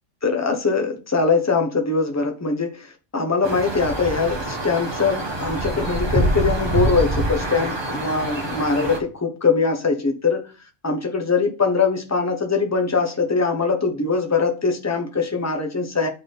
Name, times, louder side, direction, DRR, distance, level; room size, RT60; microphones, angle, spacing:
voice 1, 0.2-10.5 10.8-16.1, left 4 dB, 15° left, 0.9 m, -22 dB
sound 1, 3.4-9.0, right 1 dB, 20° right, 1.1 m, -25 dB
8.8 x 3.6 x 3.9 m
omnidirectional pair, 1.3 m